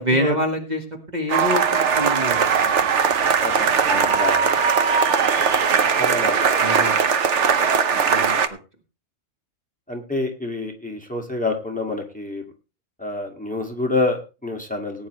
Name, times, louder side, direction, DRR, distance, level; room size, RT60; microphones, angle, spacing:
voice 1, 0.0-2.9 3.9-4.2 6.6-7.1 7.9-8.4, equal, 35° right, 3 dB, 1.6 m, -26 dB
sound 1, 1.3-8.5, right 6 dB, 65° right, 1.2 m, -19 dB
voice 2, 3.4-4.6 5.2-5.7 6.0-6.7 7.9-8.2 9.9-12.4 13.0-15.1, left 2 dB, 5° left, 2 dB, 2.1 m, -28 dB
18.5 x 9.5 x 3.2 m, 0.30 s
omnidirectional pair, 1.3 m